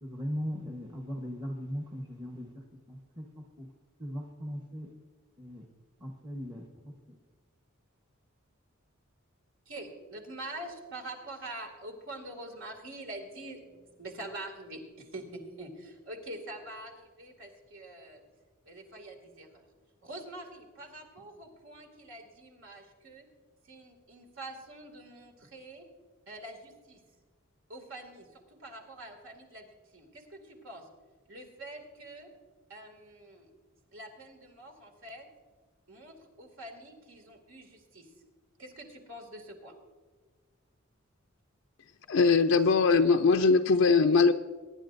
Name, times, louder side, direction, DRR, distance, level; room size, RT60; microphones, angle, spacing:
voice 1, 0.0-3.7 4.0-4.9 5.4-5.6 6.0-7.0, equal, 20° right, 1 dB, 1.1 m, -39 dB
voice 2, 9.7-18.2 18.7-19.7 20.0-23.3 23.6-25.9 26.3-27.0 27.7-30.9 31.3-32.3 32.7-33.5 33.9-35.3 35.9-38.1 38.6-39.7, right 1 dB, 70° right, 3 dB, 2.4 m, -45 dB
voice 3, 42.1-44.3, left 4 dB, 75° left, 5 dB, 0.5 m, -21 dB
23.5 x 10.5 x 2.6 m, 1.5 s
head